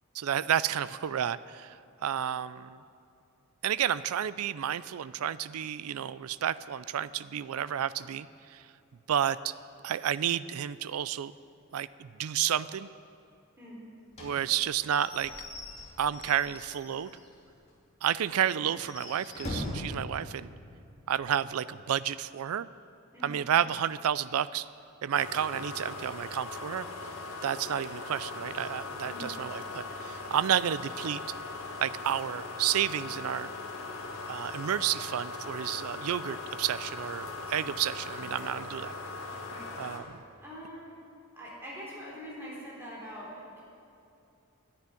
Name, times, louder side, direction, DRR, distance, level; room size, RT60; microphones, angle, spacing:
voice 1, 0.1-1.8 2.0-2.8 3.6-8.6 9.1-9.5 9.8-11.3 11.7-12.9 14.2-15.3 16.0-17.1 18.0-20.5 21.1-22.7 23.2-24.7 25.0-26.9 27.4-31.2 31.8-33.5 34.3-38.9 39.8-40.2, right 9 dB, 80° right, 16 dB, 0.4 m, -31 dB
Slam / Squeak / Wood, 14.1-17.3 17.7-17.8 18.1-18.2 18.7-20.0, left 1 dB, 30° left, 2.4 m, -41 dB
sound 1, 25.1-40.0, left 3 dB, 75° left, 1.9 m, -40 dB
voice 2, 39.5-40.0 40.4-41.0 41.3-43.6, equal, 10° right, -6 dB, 3.8 m, -44 dB
10.5 x 10.0 x 9.7 m, 2.6 s
head